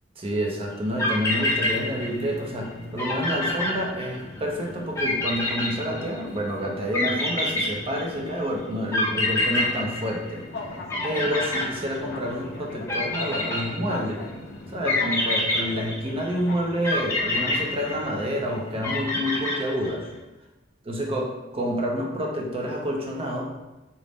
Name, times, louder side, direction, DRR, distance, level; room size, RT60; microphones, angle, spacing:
voice 1, 0.2-10.4 11.0-14.3 14.7-20.1 20.9-23.5, equal, 30° right, 0 dB, 0.5 m, -28 dB
sound 1, 0.6-19.5, left 2 dB, 55° left, 0.4 m, -41 dB
sound 2, 0.7-0.8 1.0-2.4 2.6-2.7 3.0-4.4 5.0-6.4 6.9-8.3 8.9-10.6 10.9-12.3 12.9-14.1 14.9-16.3 16.8-18.4 18.8-20.1, left 2 dB, 15° left, 0.8 m, -26 dB
3.8 x 2.0 x 3.4 m, 1.1 s
head